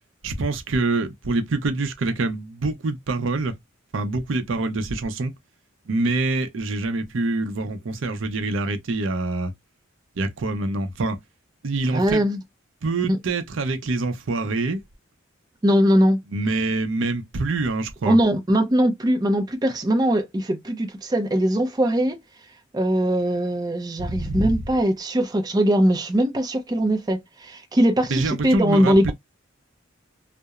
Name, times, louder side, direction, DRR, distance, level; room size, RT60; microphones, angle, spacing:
voice 1, 0.2-3.5 3.9-5.3 5.9-9.5 10.2-11.2 11.6-12.2 12.8-14.8 16.3-18.2 24.0-24.5 28.1-29.1, right 3 dB, 70° right, 0.5 m, -25 dB
voice 2, 11.9-12.4 13.1-13.2 15.6-16.2 18.1-22.2 22.7-29.1, equal, 20° right, 0.5 m, -21 dB
2.9 x 2.0 x 2.3 m
head